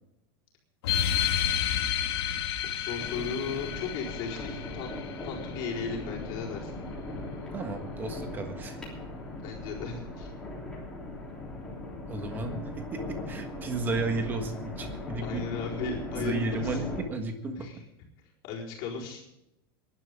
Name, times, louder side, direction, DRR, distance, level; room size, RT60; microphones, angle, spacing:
sound 1, 0.8-5.9, left 10 dB, 80° left, 1.8 m, -31 dB
voice 1, 2.6-4.9 5.2-6.8 9.4-10.3 15.2-16.8 17.6-17.8 18.4-19.3, left 5 dB, 40° left, -2 dB, 4.4 m, -36 dB
sound 2, 3.0-17.0, left 2 dB, 5° left, 3.3 m, -39 dB
voice 2, 7.5-8.8 12.1-15.4 16.2-17.8, right 3 dB, 15° right, 5 dB, 1.5 m, -33 dB
23.0 x 11.5 x 3.7 m, 0.83 s
supercardioid pair, 175°, 13 cm